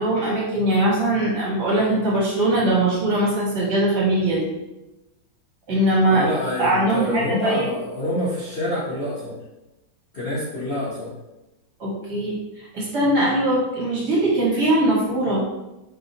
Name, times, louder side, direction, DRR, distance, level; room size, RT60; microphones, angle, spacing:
voice 1, 0.0-4.5 5.7-6.2 6.6-7.7 11.8-15.4, right 1 dB, 55° right, -5 dB, 1.8 m, -21 dB
voice 2, 6.1-9.4 10.1-11.1, left 1 dB, 40° left, -10 dB, 0.8 m, -27 dB
4.7 x 3.6 x 2.7 m, 1.0 s
omnidirectional pair, 2.2 m